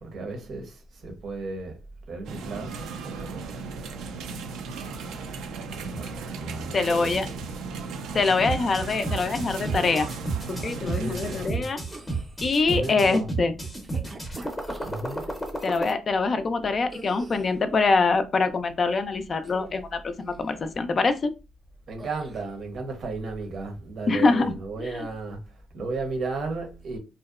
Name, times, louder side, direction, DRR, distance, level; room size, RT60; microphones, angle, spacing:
voice 1, 0.0-1.8 2.1-3.8 5.6-7.4 10.5-11.7 12.7-13.3 14.8-15.3 21.9-27.0, right 3 dB, 60° right, 0.7 m, -35 dB
sound 1, 2.2-11.5, right 4 dB, 80° right, 0.4 m, -36 dB
voice 2, 6.7-7.3 8.1-10.1 10.5-11.8 12.4-13.5 15.6-21.3 24.1-25.1, left 4 dB, 40° left, 0.3 m, -24 dB
sound 2, 8.2-15.9, right 2 dB, 15° left, 0.7 m, -32 dB
sound 3, 9.6-10.3 11.7-12.4 13.6-15.4 16.9-17.6 19.4-19.9 20.2-20.6 22.0-22.4, right 2 dB, 25° right, 0.5 m, -43 dB
2.7 x 2.0 x 2.3 m
cardioid pair, 105°, 0 cm